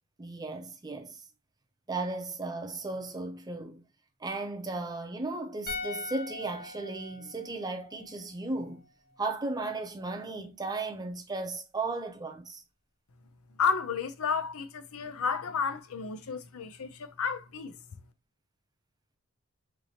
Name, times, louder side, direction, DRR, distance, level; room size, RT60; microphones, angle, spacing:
voice 1, 0.2-1.2 1.9-3.8 4.2-8.8 9.2-12.6, right 3 dB, 20° right, 0.6 m, -35 dB
sound 1, 5.7-8.9 9.1-9.3, left 3 dB, 45° left, 1.3 m, -42 dB
voice 2, 13.6-17.8, left 5 dB, 70° left, 0.6 m, -31 dB
4.6 x 2.9 x 2.7 m
head